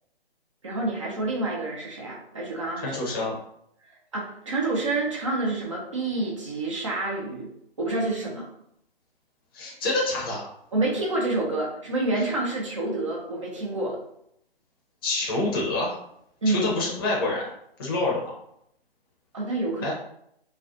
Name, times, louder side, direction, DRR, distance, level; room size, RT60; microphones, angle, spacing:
voice 1, 0.6-3.0 4.1-7.5 7.8-8.5 10.7-14.0 16.4-16.7 19.3-19.9, right 2 dB, 30° right, -3 dB, 0.5 m, -28 dB
voice 2, 2.8-3.3 9.5-10.5 15.0-16.0 16.5-17.5 17.8-18.4 19.8-19.9, left 2 dB, 20° left, -3 dB, 0.6 m, -27 dB
2.4 x 2.1 x 2.5 m, 0.74 s
figure-of-eight pair, 140°, 31 cm